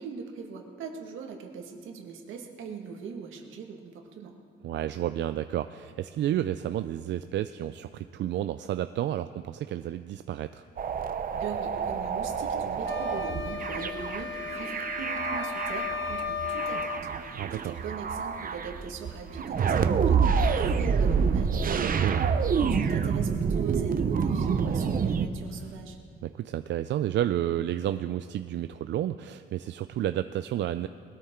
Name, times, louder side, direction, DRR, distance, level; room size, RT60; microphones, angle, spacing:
voice 1, 0.0-4.3 11.4-21.8 22.7-26.0, right 6 dB, 85° right, 2 dB, 1.8 m, -40 dB
voice 2, 4.6-10.6 17.3-17.8 21.7-22.3 26.2-30.9, right 12 dB, 65° right, 10 dB, 0.4 m, -31 dB
sound 1, 10.8-25.3, right 6 dB, 45° right, 0.8 m, -28 dB
sound 2, 12.8-17.1, left 6 dB, 70° left, 1.5 m, -35 dB
20.5 x 13.0 x 3.8 m, 2.3 s
cardioid pair, 90°, 20 cm